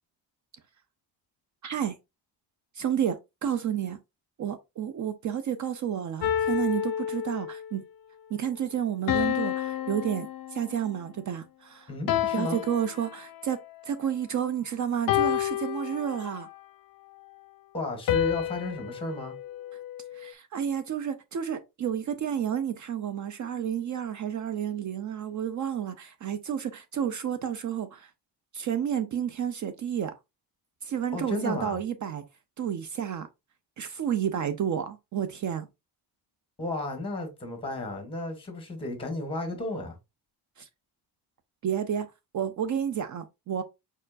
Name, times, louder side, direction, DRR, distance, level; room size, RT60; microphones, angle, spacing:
voice 1, 1.6-2.0 2.7-4.0 4.4-7.8 8.3-11.9 12.3-16.5 20.1-28.1 28.5-30.1 30.8-32.2 32.6-33.3 33.8-35.7 40.6-40.7 41.6-42.1 42.3-43.6, right 9 dB, 45° right, 0.5 m, -31 dB
sound 1, 6.2-7.7 9.1-10.9 12.1-13.5 15.1-16.5 18.1-20.3, left 11 dB, 55° left, 0.6 m, -30 dB
voice 2, 11.9-12.6 17.7-19.4 31.1-31.8 36.6-39.9, left 2 dB, 15° left, 1.6 m, -33 dB
5.0 x 4.4 x 2.5 m
cardioid pair, 150°, 42 cm